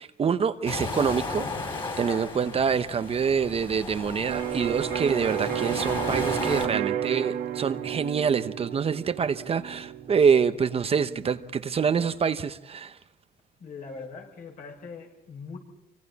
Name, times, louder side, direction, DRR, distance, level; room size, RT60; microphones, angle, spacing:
voice 1, 0.0-1.5 1.7-13.0, right 6 dB, 35° right, 0.9 m, -26 dB
sound 1, 0.7-6.7, left 3 dB, 30° left, 4.7 m, -34 dB
Electric guitar, 4.3-12.0, right 11 dB, 75° right, 2.3 m, -33 dB
voice 2, 13.6-15.6, left 4 dB, 55° left, 6.0 m, -41 dB
27.5 x 24.5 x 4.2 m
cardioid pair, 110°, 17 cm